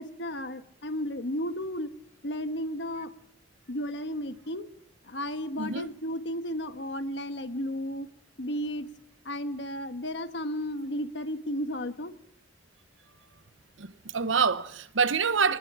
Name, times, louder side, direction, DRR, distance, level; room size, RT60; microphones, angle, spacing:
voice 1, 0.0-1.9 2.2-3.1 3.7-4.7 5.0-8.1 8.4-8.9 9.2-12.1, equal, 60° left, 1.4 m, -33 dB
voice 2, 5.6-5.9 13.8-15.6, right 5 dB, 85° right, 1.1 m, -26 dB
27.5 x 20.0 x 5.0 m
head